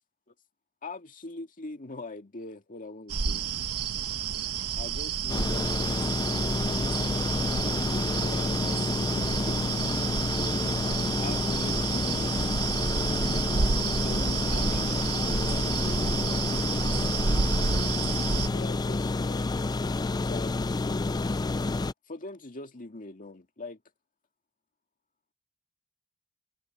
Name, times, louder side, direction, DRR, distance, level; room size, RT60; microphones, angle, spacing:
voice 1, 0.8-3.5 4.8-6.2 7.6-8.8 9.2-9.6 11.2-12.2 13.5-16.2 18.5-19.5 20.2-20.9 22.1-23.8, left 2 dB, 40° left, 1.9 m, -43 dB
sound 1, 3.1-18.5, right 6 dB, 90° right, 1.0 m, -30 dB
sound 2, 5.3-21.9, left 3 dB, 20° left, 0.3 m, -29 dB
head